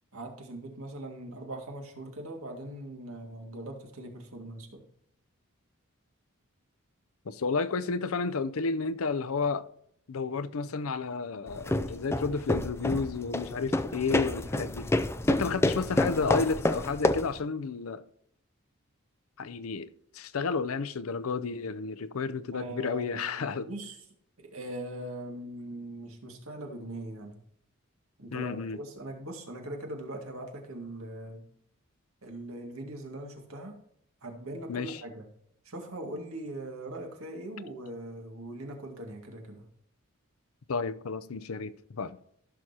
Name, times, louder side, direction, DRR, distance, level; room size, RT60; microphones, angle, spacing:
voice 1, 0.1-4.8 22.5-24.0 24.4-27.4 28.2-31.4 32.2-33.8 34.2-35.3 35.6-39.6, right 1 dB, 85° right, 2.1 m, -41 dB
voice 2, 7.3-9.7 10.1-14.9 15.3-18.0 19.4-23.7 28.3-28.8 34.7-35.0 40.7-42.2, left 4 dB, 85° left, 0.6 m, -32 dB
sound 1, 11.5-17.4, left 1 dB, 10° left, 0.3 m, -28 dB
15.0 x 6.3 x 2.9 m
head